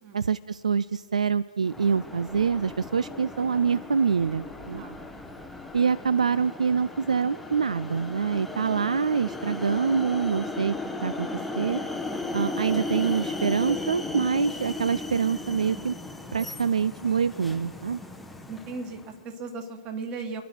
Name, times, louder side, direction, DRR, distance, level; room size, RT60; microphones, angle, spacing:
voice 1, 0.1-4.8 5.7-10.8 11.0-11.3 11.5-11.8 12.3-15.9 16.3-18.0, right 6 dB, 65° right, 18 dB, 0.3 m, -25 dB
sound 1, 1.7-19.1, left 2 dB, ahead, 0.7 m, -36 dB
voice 2, 4.7-5.1 18.5-20.4, right 4 dB, 20° right, 6 dB, 1.6 m, -37 dB
28.0 x 10.0 x 4.6 m, 2.2 s
figure-of-eight pair, 125°, 4 cm